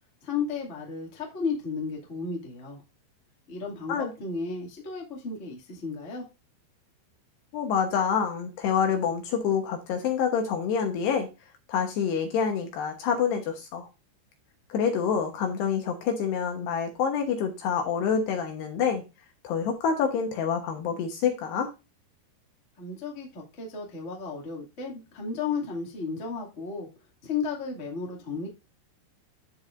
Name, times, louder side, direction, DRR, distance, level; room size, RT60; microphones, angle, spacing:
voice 1, 0.2-2.8 3.5-6.2 22.8-26.9 27.2-28.5, left 5 dB, 35° left, -2 dB, 1.1 m, -33 dB
voice 2, 7.5-11.3 11.7-13.9 14.7-19.0 19.4-21.7, left 7 dB, 70° left, 4 dB, 2.8 m, -27 dB
14.0 x 4.8 x 2.5 m, 0.26 s
omnidirectional pair, 5.7 m